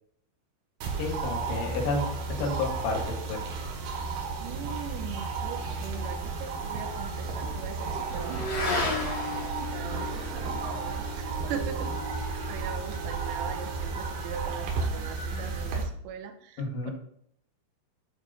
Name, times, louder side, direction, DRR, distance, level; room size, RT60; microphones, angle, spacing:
sound 1, 0.8-15.8, right 4 dB, 65° right, 2.7 m, -33 dB
voice 1, 1.0-3.4 16.6-16.9, left 3 dB, 75° left, 1 dB, 3.9 m, -31 dB
voice 2, 4.4-10.4 10.7-16.9, right 8 dB, 90° right, 7 dB, 3.3 m, -41 dB
Motorcycle / Accelerating revving vroom, 5.7-14.4, left 3 dB, 50° left, 1.9 m, -37 dB
11.0 x 6.4 x 2.7 m, 0.69 s
omnidirectional pair, 5.8 m